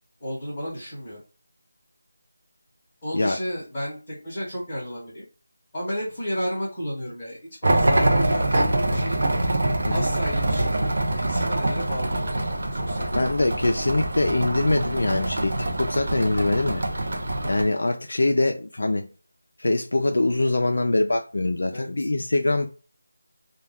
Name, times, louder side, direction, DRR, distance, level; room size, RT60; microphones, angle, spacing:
voice 1, 0.2-1.2 3.0-5.2 5.7-9.2 9.9-13.2 21.7-22.1, equal, 10° left, 0.9 m, -32 dB
sound 1, 7.6-17.6, right 1 dB, 50° right, 0.5 m, -25 dB
voice 2, 13.1-16.8 17.4-19.1 19.6-22.7, left 2 dB, 60° left, 0.4 m, -23 dB
2.2 x 2.2 x 3.3 m
figure-of-eight pair, 175°, 0 cm